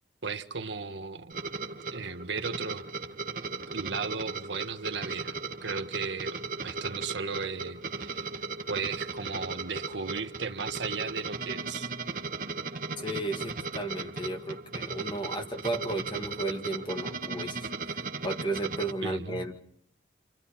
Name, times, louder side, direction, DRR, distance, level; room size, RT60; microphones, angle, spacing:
voice 1, 0.2-1.4 1.9-2.8 3.7-5.4 5.6-6.4 6.6-8.3 8.7-11.9 19.0-19.4, right 4 dB, 90° right, 7 dB, 1.5 m, -35 dB
sound 1, 1.3-18.9, right 4 dB, 50° right, 1.3 m, -37 dB
voice 2, 13.0-17.7 18.2-19.6, right 2 dB, 25° left, 3 dB, 2.0 m, -34 dB
30.0 x 27.5 x 4.3 m, 0.64 s
head